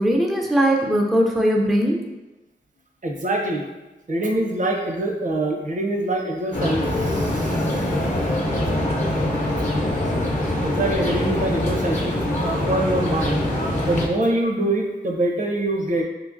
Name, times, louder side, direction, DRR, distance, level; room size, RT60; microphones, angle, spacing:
voice 1, 0.0-2.1, equal, ahead, 1 dB, 0.4 m, -20 dB
voice 2, 3.0-3.6 4.1-7.7 10.6-13.4 13.8-16.0, right 1 dB, 50° right, 1 dB, 0.6 m, -24 dB
sound 1, 6.5-14.1, left 1 dB, 45° left, 0.6 m, -23 dB
3.9 x 2.8 x 2.5 m, 1.1 s
wide cardioid pair, 75°, 17 cm